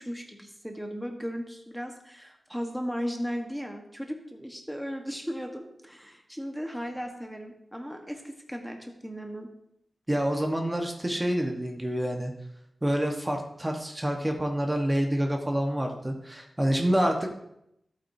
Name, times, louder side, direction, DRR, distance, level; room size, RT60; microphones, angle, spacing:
voice 1, 0.0-9.5, equal, ahead, 3 dB, 1.3 m, -36 dB
voice 2, 10.1-12.3 12.8-17.3, equal, 20° right, 2 dB, 1.3 m, -27 dB
11.5 x 8.6 x 2.8 m, 0.79 s
cardioid pair, 50°, 0 cm